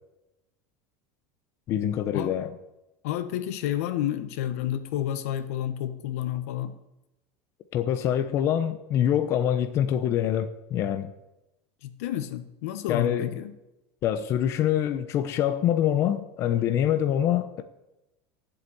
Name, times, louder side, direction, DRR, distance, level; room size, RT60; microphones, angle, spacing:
voice 1, 1.7-2.5 7.7-11.1 12.9-13.3 14.0-17.6, left 10 dB, 35° left, 0.8 m, -25 dB
voice 2, 3.0-6.7 11.8-13.5, left 11 dB, 80° left, 1.3 m, -30 dB
13.5 x 8.1 x 8.6 m
supercardioid pair, 165°, 8 cm